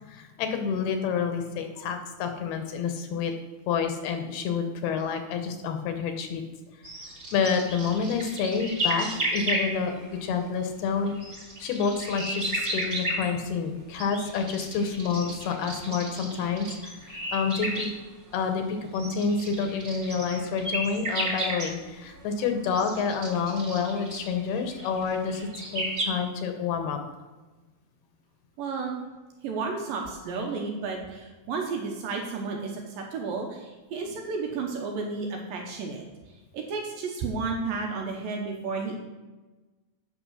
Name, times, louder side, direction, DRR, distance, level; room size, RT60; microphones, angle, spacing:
voice 1, 0.1-3.3 3.7-6.4 7.3-11.1 11.6-17.9 18.3-27.0, left 5 dB, 75° left, 5 dB, 2.7 m, -28 dB
sound 1, 6.8-10.2 10.9-13.3 14.0-17.9 18.3-18.5 18.9-21.7 22.1-26.1, right 1 dB, 25° right, 2.1 m, -33 dB
voice 2, 28.6-29.0 29.4-36.0 36.5-39.0, right 4 dB, 75° right, 1 dB, 2.3 m, -32 dB
9.2 x 6.0 x 6.2 m, 1.2 s
omnidirectional pair, 4.8 m